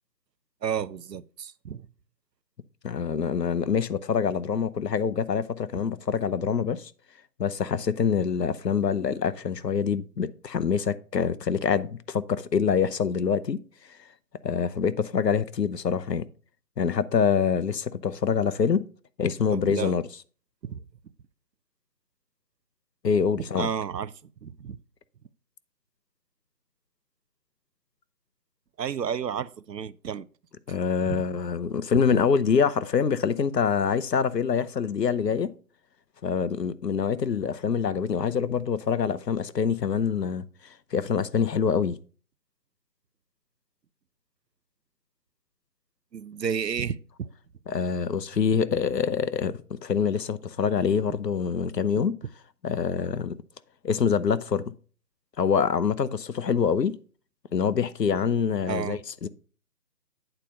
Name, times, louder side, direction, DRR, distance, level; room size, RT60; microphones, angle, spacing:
voice 1, 0.6-1.9 19.5-20.0 20.6-20.8 23.4-24.1 24.4-24.8 28.8-30.3 31.0-31.2 32.1-32.2 46.1-47.3 51.1-51.2 58.7-59.0, right 7 dB, 85° right, 0.7 m, -32 dB
voice 2, 2.8-6.9 7.4-13.6 14.4-16.2 16.8-18.9 19.2-20.0 23.0-23.7 30.7-35.5 36.2-40.4 40.9-42.0 47.7-52.2 52.6-53.4 53.8-54.7 55.4-57.0 57.5-59.3, left 6 dB, 80° left, 0.9 m, -25 dB
9.1 x 4.5 x 5.4 m
figure-of-eight pair, 175°, 48 cm